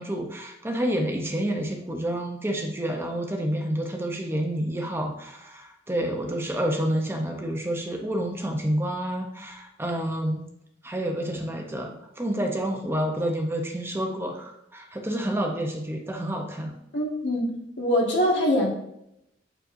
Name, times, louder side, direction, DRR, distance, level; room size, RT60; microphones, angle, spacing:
voice 1, 0.0-10.4 10.8-16.8, right 1 dB, 15° right, 2 dB, 0.7 m, -29 dB
voice 2, 16.9-18.7, equal, 70° left, -2 dB, 1.6 m, -24 dB
7.6 x 4.9 x 2.6 m, 0.79 s
head